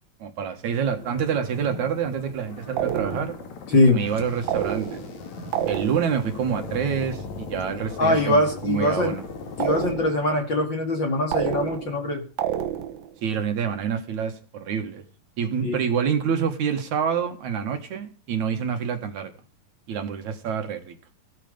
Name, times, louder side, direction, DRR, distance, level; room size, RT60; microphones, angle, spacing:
voice 1, 0.2-3.3 3.9-5.0 5.7-9.2 13.2-15.0 15.4-19.3 19.9-21.0, right 7 dB, 65° right, 7 dB, 2.7 m, -27 dB
sound 1, 0.7-9.9, left 3 dB, 55° left, 3.3 m, -38 dB
sound 2, 2.8-3.5 4.5-5.2 5.5-6.3 9.6-10.3 11.3-12.0 12.4-13.1, right 11 dB, 85° right, 2.9 m, -28 dB
voice 2, 8.0-9.1 9.6-12.2 15.6-15.8, left 2 dB, 40° left, 5 dB, 2.2 m, -22 dB
16.5 x 11.5 x 5.3 m, 0.38 s
omnidirectional pair, 4.0 m